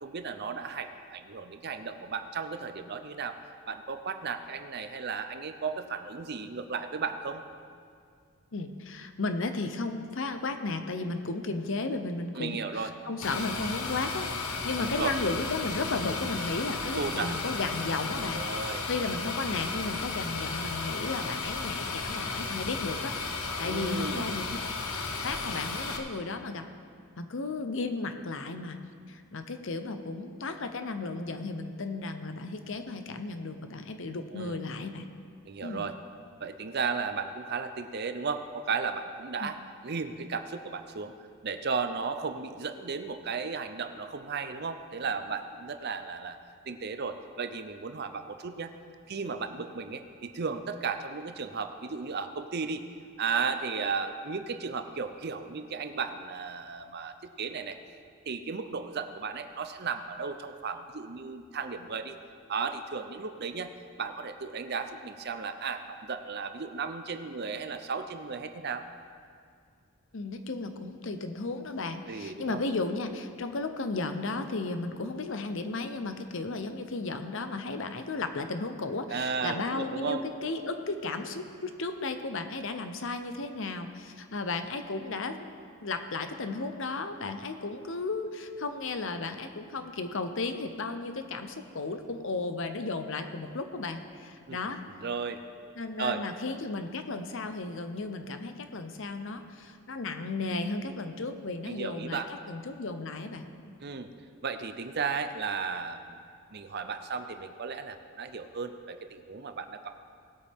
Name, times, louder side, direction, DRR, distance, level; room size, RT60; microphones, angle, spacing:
voice 1, 0.0-3.4 3.7-7.4 12.4-12.9 14.8-15.1 17.0-17.3 18.3-18.8 23.6-24.3 34.3-34.6 35.4-35.9 36.4-39.6 39.8-41.1 41.4-46.4 46.7-48.7 49.1-52.8 53.2-57.8 58.3-62.2 62.5-63.7 64.0-68.9 72.1-72.6 79.1-80.2 94.5-94.6 95.0-95.4 96.0-96.2 101.7-102.3 103.8-104.1 104.4-106.2 106.5-110.0, right 5 dB, 50° right, 9 dB, 0.6 m, -34 dB
voice 2, 8.5-24.5 25.2-26.6 27.2-28.8 29.1-35.1 35.6-35.9 39.4-39.5 70.1-85.5 85.8-94.8 95.8-102.2 102.5-103.7, left 3 dB, 60° left, 8 dB, 0.8 m, -34 dB
sound 1, 13.2-26.0, left 4 dB, 80° left, 1.1 m, -34 dB
19.0 x 8.6 x 3.6 m, 2.3 s
head